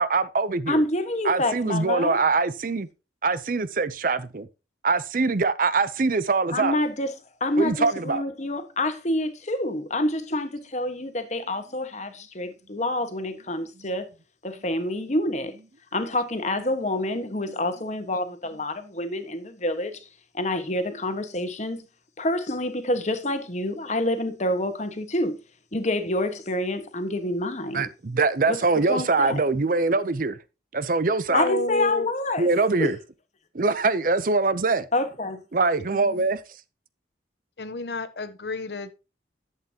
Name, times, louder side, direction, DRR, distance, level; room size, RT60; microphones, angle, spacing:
voice 1, 0.0-0.8 1.2-2.9 3.2-4.5 4.8-6.8 7.6-8.2 27.7-30.4 30.7-31.5 32.4-33.0 33.5-34.9 35.5-36.4, right 3 dB, 50° right, 0.6 m, -23 dB
voice 2, 0.7-2.2 6.5-7.1 7.4-14.1 14.4-15.6 15.9-20.0 20.3-21.8 22.2-25.4 25.7-27.8 28.5-28.6 28.9-29.4 31.3-32.5 32.8-32.9 34.9-35.4, left 1 dB, 40° left, 1.4 m, -27 dB
voice 3, 31.3-32.1 35.9-36.3 37.6-38.9, left 2 dB, 65° left, 0.9 m, -30 dB
11.0 x 8.2 x 2.9 m
head